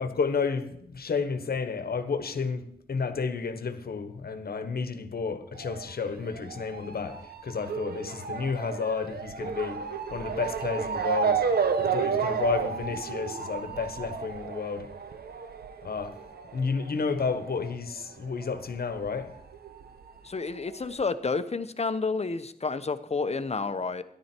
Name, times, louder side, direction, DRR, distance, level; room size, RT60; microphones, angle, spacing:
voice 1, 0.0-9.8 10.1-11.5 11.8-14.9 15.8-16.2 16.5-19.4, left 5 dB, 75° left, 1.3 m, -31 dB
Motor vehicle (road) / Siren, 5.6-18.6 18.8-20.0 20.7-20.8 21.0-21.1, right 6 dB, 85° right, 1.0 m, -32 dB
voice 2, 20.2-24.0, left 4 dB, 40° left, 1.0 m, -30 dB
13.5 x 11.0 x 4.5 m
cardioid pair, 65°, 16 cm